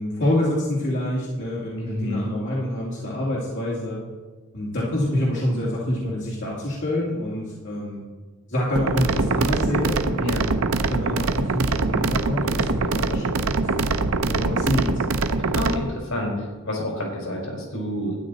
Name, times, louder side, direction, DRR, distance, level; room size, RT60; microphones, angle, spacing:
voice 1, 0.0-4.0 4.5-8.0 8.5-10.4 10.7-14.9, left 1 dB, 60° left, -6 dB, 2.3 m, -26 dB
voice 2, 1.8-2.2 10.2-10.4 15.3-18.2, left 1 dB, 80° left, -1 dB, 4.3 m, -29 dB
sound 1, 8.8-15.8, right 3 dB, 85° right, 0.7 m, -23 dB
12.5 x 9.9 x 4.1 m, 1.3 s
head